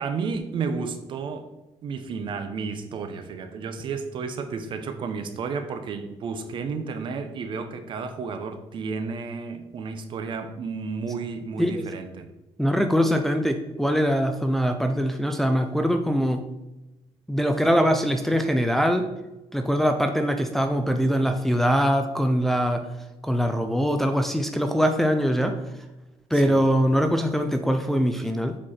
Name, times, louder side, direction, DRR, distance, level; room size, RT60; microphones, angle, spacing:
voice 1, 0.0-1.5 1.8-12.3 26.3-26.6, right 5 dB, 50° right, 8 dB, 0.9 m, -32 dB
voice 2, 12.6-16.5 17.3-19.1 19.5-22.9 23.2-25.6 26.3-28.6, equal, 5° left, 5 dB, 0.6 m, -22 dB
7.4 x 4.7 x 4.3 m, 1.0 s
cardioid pair, 125°, 11 cm